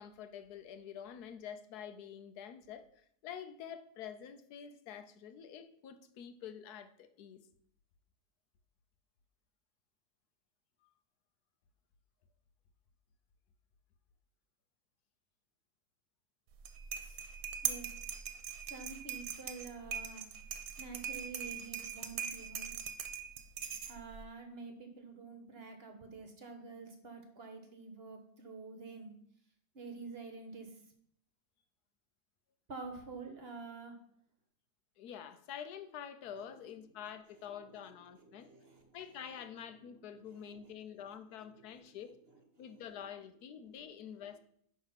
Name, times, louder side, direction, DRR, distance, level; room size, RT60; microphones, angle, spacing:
voice 1, 0.0-7.5 35.0-38.5 38.9-42.1 42.6-44.4, left 8 dB, 80° left, 10 dB, 1.2 m, -47 dB
sound 1, 16.5-24.2, right 8 dB, 70° right, 1.2 m, -41 dB
voice 2, 17.0-17.3 17.6-18.0 18.7-20.2 20.8-22.7 23.8-29.1 29.7-30.7 32.7-34.0 37.6-37.8 38.3-39.0 40.5-40.7 41.0-41.1 41.4-41.6 42.6-42.7 43.7-43.8, right 4 dB, 45° right, 5 dB, 1.1 m, -48 dB
10.5 x 3.5 x 5.7 m, 0.67 s
omnidirectional pair, 1.6 m